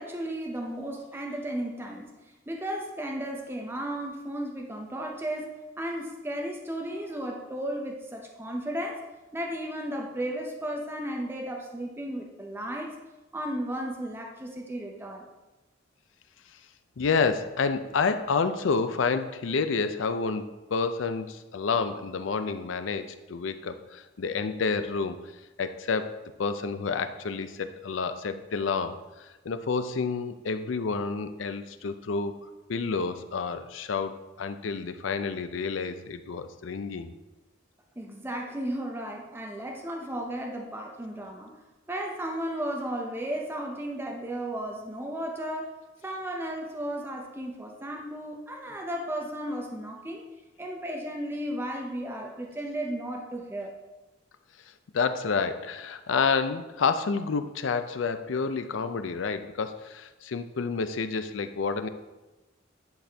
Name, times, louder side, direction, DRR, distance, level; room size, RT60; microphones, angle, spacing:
voice 1, 0.0-2.1 2.5-9.0 9.3-13.0 13.3-15.3 38.0-41.5 41.9-45.7 46.0-50.2 50.6-53.7, right 1 dB, 10° right, 0 dB, 0.6 m, -34 dB
voice 2, 17.0-25.3 25.6-32.4 32.7-37.1 54.9-61.9, left 5 dB, 80° left, 10 dB, 0.5 m, -29 dB
10.5 x 4.2 x 3.4 m, 1.1 s
head